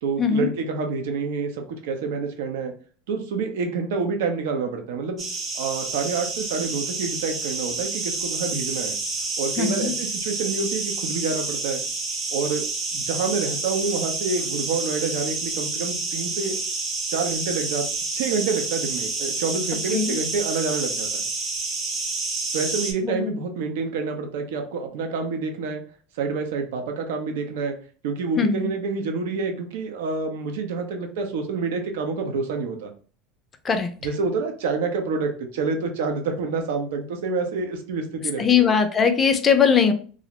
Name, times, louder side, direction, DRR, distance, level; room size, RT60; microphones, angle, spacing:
voice 1, 0.0-2.7 3.1-5.2 5.5-9.0 9.4-11.8 12.3-12.6 12.9-16.6 17.1-21.3 22.5-25.8 26.1-27.8 28.0-32.9 34.0-38.7, right 4 dB, 80° right, 4 dB, 0.5 m, -28 dB
sound 1, 5.2-22.9, right 3 dB, 40° right, 0.8 m, -29 dB
voice 2, 9.6-9.9 19.9-20.2 23.0-23.3 28.4-28.7 33.6-33.9 38.4-39.9, left 6 dB, 25° left, 8 dB, 0.4 m, -20 dB
2.4 x 2.0 x 2.8 m, 0.42 s
supercardioid pair, 125°, 0 cm